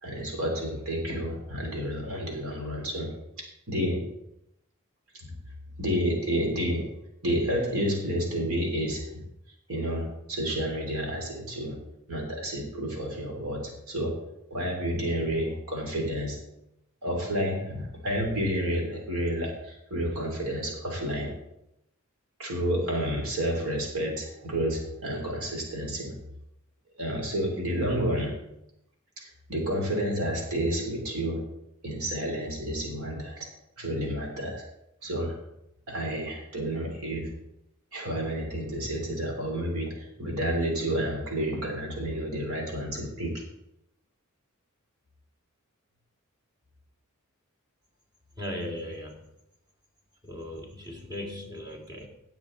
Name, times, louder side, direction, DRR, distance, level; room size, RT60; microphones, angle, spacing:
voice 1, 0.0-3.1 3.7-4.0 5.1-5.3 5.8-6.9 7.2-9.2 9.7-11.8 12.1-14.2 14.5-16.4 17.0-21.3 22.4-26.2 27.0-28.3 29.2-31.4 31.8-33.5 33.8-34.6 35.0-35.4 35.9-37.3 37.9-43.4, equal, 85° right, 0 dB, 3.3 m, -30 dB
voice 2, 48.4-49.3 50.2-52.1, left 1 dB, 20° right, -1 dB, 2.2 m, -37 dB
17.5 x 7.1 x 3.9 m, 0.84 s
head